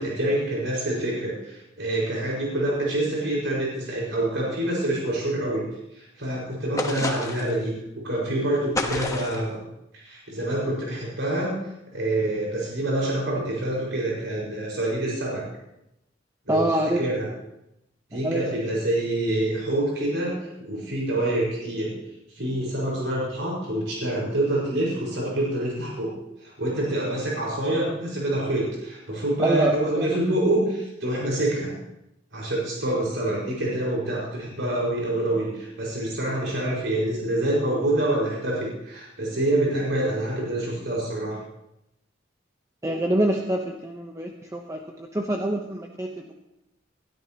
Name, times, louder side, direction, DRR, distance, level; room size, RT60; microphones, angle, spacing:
voice 1, 0.0-5.7 5.9-7.7 8.0-9.6 9.9-11.5 11.9-15.4 16.5-16.6 17.0-17.3 18.1-21.9 22.3-26.1 26.4-31.7 32.3-41.4, right 1 dB, 70° right, -4 dB, 5.3 m, -26 dB
sound 1, 6.8-7.6 8.7-9.5, left 2 dB, 15° left, 1.2 m, -29 dB
voice 2, 16.5-17.0 18.1-18.5 29.4-30.2 42.8-44.8 45.1-46.3, right 1 dB, 15° right, 1 dB, 0.9 m, -26 dB
20.5 x 13.0 x 3.0 m, 0.86 s
head